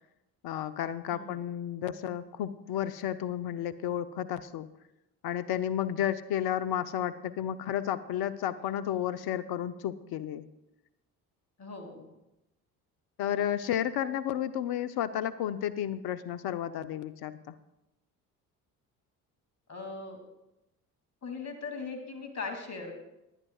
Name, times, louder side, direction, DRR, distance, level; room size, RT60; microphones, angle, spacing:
voice 1, 0.4-4.7 5.2-10.4 13.2-17.6, left 10 dB, 55° left, 13 dB, 0.8 m, -32 dB
voice 2, 11.6-12.1 19.7-20.2 21.2-22.9, left 4 dB, 35° left, 4 dB, 2.8 m, -39 dB
18.5 x 11.0 x 2.4 m, 0.91 s
hypercardioid pair, 50°, 46 cm